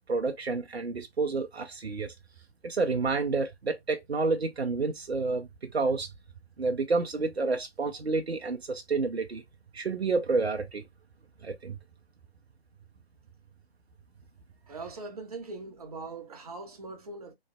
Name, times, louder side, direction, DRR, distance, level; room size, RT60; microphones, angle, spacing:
voice 1, 0.1-2.1 2.6-6.1 6.6-9.4 9.7-10.8 11.4-11.8, right 3 dB, 80° right, 0.7 m, -29 dB
voice 2, 14.7-17.3, right 3 dB, 35° right, 1.0 m, -41 dB
3.7 x 3.2 x 2.3 m
figure-of-eight pair, 145°, 31 cm